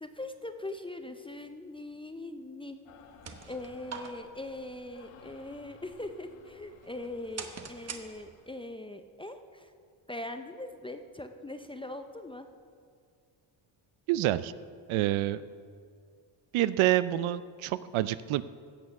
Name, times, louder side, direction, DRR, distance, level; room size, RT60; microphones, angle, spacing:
voice 1, 0.0-2.8 3.5-9.7 10.1-12.5, left 2 dB, 10° left, 7 dB, 0.4 m, -41 dB
sound 1, 2.9-8.6, left 8 dB, 80° left, 1.1 m, -58 dB
sound 2, 2.9-8.6, right 5 dB, 30° right, 1.0 m, -47 dB
voice 2, 14.1-14.5 14.9-15.4 16.5-18.4, right 14 dB, 75° right, 16 dB, 0.6 m, -27 dB
16.0 x 6.6 x 5.8 m, 2.1 s
cardioid pair, 120°, 50 cm